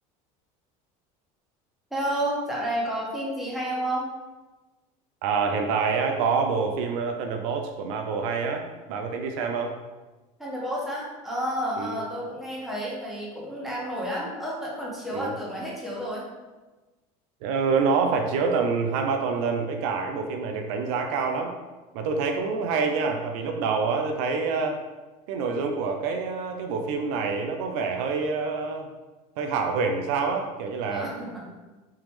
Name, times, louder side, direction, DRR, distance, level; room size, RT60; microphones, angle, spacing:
voice 1, 1.9-4.1 10.4-16.2 30.9-31.4, equal, ahead, -6 dB, 1.4 m, -30 dB
voice 2, 5.2-8.6 8.9-9.8 11.8-12.0 15.1-15.3 17.4-21.5 21.9-24.8 25.3-28.9 29.4-31.1, right 5 dB, 80° right, 4 dB, 0.5 m, -26 dB
3.5 x 2.9 x 3.1 m, 1.2 s
supercardioid pair, 100°, 18 cm